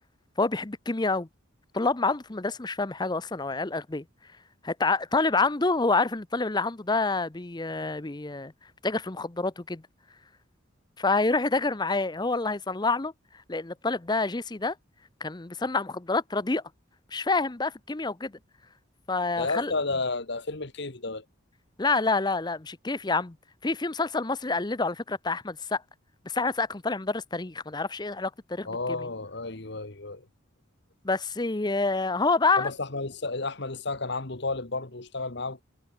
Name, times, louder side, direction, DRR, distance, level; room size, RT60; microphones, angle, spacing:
voice 1, 0.4-1.3 1.7-4.0 4.6-8.5 8.8-9.8 11.0-13.1 13.5-14.7 15.2-16.6 17.1-18.3 19.1-19.7 21.8-23.4 23.6-25.8 26.3-28.7 31.0-32.7, left 3 dB, 20° left, 0.7 m, -27 dB
voice 2, 19.4-21.2 28.6-30.2 32.6-35.6, left 3 dB, 55° left, 1.7 m, -32 dB
head